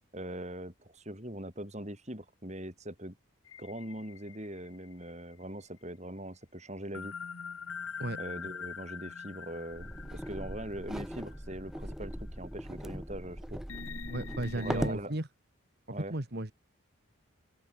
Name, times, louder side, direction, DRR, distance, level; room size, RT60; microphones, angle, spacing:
voice 1, 0.1-3.2 3.6-7.2 8.2-13.6 14.5-15.2 15.9-16.1, right 1 dB, 30° right, 6.7 m, -41 dB
sound 1, 3.5-5.4 6.9-11.8 12.3-12.4 13.7-15.0, left 6 dB, 75° left, 1.3 m, -44 dB
sound 2, 9.7-15.0, equal, ahead, 0.4 m, -39 dB
voice 2, 14.1-15.3 16.1-16.5, right 1 dB, 50° right, 1.9 m, -34 dB
open air
head